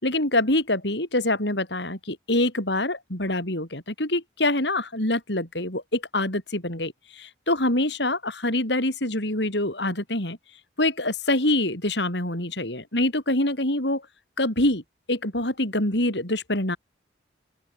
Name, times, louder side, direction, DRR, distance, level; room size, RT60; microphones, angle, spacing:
voice 1, 0.0-10.4 10.8-14.0 14.4-14.8 15.1-16.8, left 1 dB, 65° left, 7.5 m, -25 dB
open air
head